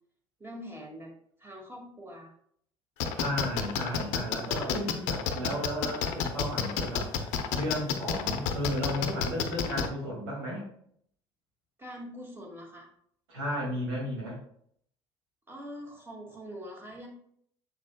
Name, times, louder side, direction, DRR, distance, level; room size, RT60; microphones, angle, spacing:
voice 1, 0.4-1.1 1.4-2.3 11.8-12.9 15.5-17.1, equal, 15° right, 0 dB, 2.0 m, -44 dB
sound 1, 3.0-9.9, left 8 dB, 60° left, 0.7 m, -29 dB
voice 2, 3.1-10.7 13.3-14.4, equal, 75° right, -3 dB, 2.3 m, -34 dB
7.0 x 6.4 x 2.3 m, 0.66 s
hypercardioid pair, 65°, 14 cm